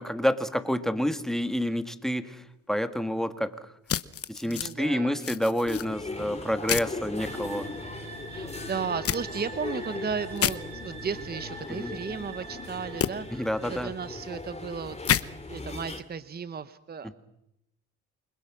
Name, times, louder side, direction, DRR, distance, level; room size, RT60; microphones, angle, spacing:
voice 1, 0.0-3.5 4.3-7.7 11.7-11.9 13.3-13.9 17.0-17.1, equal, ahead, 9 dB, 1.9 m, -29 dB
sound 1, 3.9-4.7 5.2-5.9 6.7-6.9 9.0-9.2 10.4-10.6 13.0-13.1 15.0-15.2, left 9 dB, 50° left, 1.0 m, -27 dB
voice 2, 4.4-5.3 8.3-17.1, right 6 dB, 30° right, 13 dB, 1.0 m, -35 dB
sound 2, 5.6-16.0, left 3 dB, 20° left, 2.6 m, -39 dB
sound 3, 7.2-14.7, right 3 dB, 80° right, 6.2 m, -44 dB
29.0 x 21.0 x 6.2 m, 0.82 s
cardioid pair, 90°, 30 cm